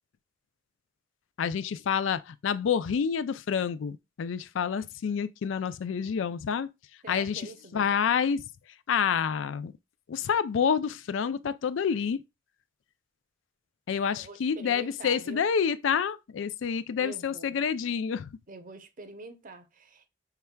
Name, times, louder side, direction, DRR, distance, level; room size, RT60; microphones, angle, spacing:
voice 1, 1.4-6.7 7.1-7.5 7.7-8.4 8.9-9.7 10.1-12.2 13.9-18.3, left 7 dB, 70° left, 0.4 m, -28 dB
voice 2, 7.0-8.0 14.1-15.5 17.0-17.6 18.5-20.1, right 3 dB, 45° right, 0.8 m, -45 dB
5.7 x 3.3 x 2.2 m
head